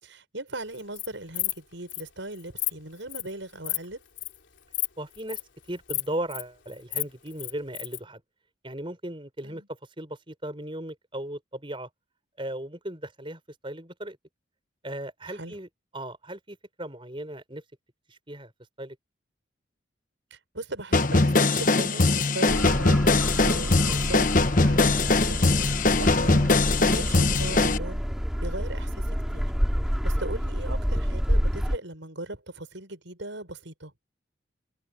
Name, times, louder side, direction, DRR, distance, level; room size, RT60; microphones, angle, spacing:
voice 1, 0.0-4.0 9.4-9.7 15.3-15.6 20.3-24.3 24.6-25.5 26.0-26.5 26.8-28.0 28.4-29.5 30.0-33.9, right 2 dB, 70° right, 6.2 m, -38 dB
Insect, 0.7-1.1 1.3-1.6 1.9-2.0 2.4-2.7 3.1-3.3 3.6-3.8 4.2-4.4 4.7-4.9 5.1-5.4 5.9-6.4 6.7-8.0, left 16 dB, 70° left, 3.3 m, -30 dB
voice 2, 5.0-5.4 5.7-8.2 8.6-11.9 12.4-14.2 14.8-15.7 15.9-17.6 18.1-18.5 18.8-19.0, right 1 dB, 25° right, 5.0 m, -37 dB
power cartridge, 20.9-27.8, left 3 dB, 40° left, 1.1 m, -21 dB
sound 1, 22.4-31.8, equal, ahead, 3.1 m, -28 dB
head